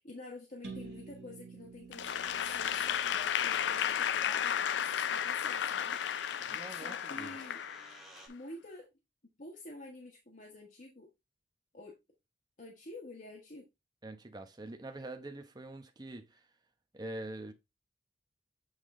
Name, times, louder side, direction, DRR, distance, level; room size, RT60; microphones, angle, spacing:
voice 1, 0.0-6.0 6.4-7.6 8.3-8.9 9.4-11.1 11.7-12.0 12.6-13.7, left 2 dB, 45° left, 1.4 m, -49 dB
sound 1, 0.6-4.5, right 4 dB, 80° right, 1.9 m, -50 dB
Applause / Crowd, 1.9-8.2, left 9 dB, 70° left, 0.4 m, -33 dB
sound 2, 2.0-8.3, right 1 dB, ahead, 1.6 m, -56 dB
voice 2, 6.4-7.4 14.0-16.4 16.9-17.5, right 1 dB, 20° right, 0.9 m, -44 dB
8.1 x 3.6 x 3.7 m
head